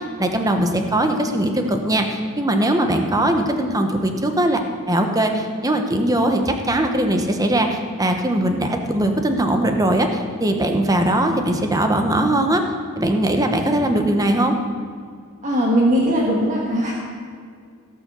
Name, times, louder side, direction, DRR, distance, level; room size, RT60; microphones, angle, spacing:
voice 1, 0.0-4.6 4.9-12.6 13.0-14.5, right 1 dB, 15° right, 5 dB, 1.0 m, -20 dB
voice 2, 15.4-16.9, equal, 35° right, -5 dB, 1.6 m, -19 dB
17.0 x 5.7 x 6.9 m, 2.1 s
head